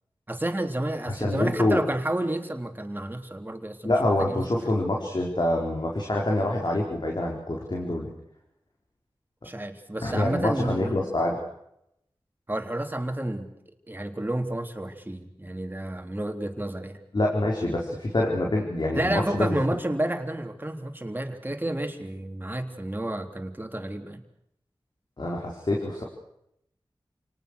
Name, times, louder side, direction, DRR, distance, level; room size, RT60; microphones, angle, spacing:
voice 1, 0.3-3.9 4.2-4.4 9.4-11.1 12.5-13.5 13.9-17.0 18.9-24.2, right 1 dB, 20° right, 5 dB, 3.5 m, -30 dB
voice 2, 1.1-1.8 3.8-8.1 10.0-11.4 17.1-19.6 25.2-26.0, left 1 dB, 55° left, -1 dB, 4.5 m, -26 dB
29.0 x 19.0 x 6.6 m, 0.78 s
wide cardioid pair, 45°, 9 cm